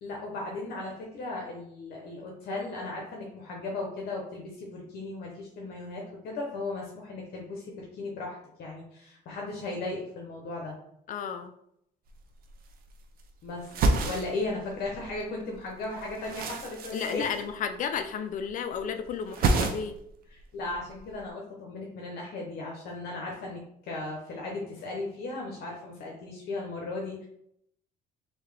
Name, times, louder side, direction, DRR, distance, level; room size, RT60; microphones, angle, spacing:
voice 1, 0.0-10.7 13.4-13.7 14.1-17.2 20.3-27.3, left 2 dB, 70° left, -1 dB, 0.9 m, -36 dB
voice 2, 11.1-11.5 16.9-20.0, left 7 dB, 50° left, 8 dB, 0.4 m, -33 dB
sound 1, 12.1-12.2 12.4-13.3 13.6-15.2 15.5-18.0 18.3-18.8 19.1-20.1 20.4-21.2, right 3 dB, 60° right, 0.6 m, -30 dB
3.6 x 2.8 x 3.2 m, 0.73 s
cardioid pair, 110°, 17 cm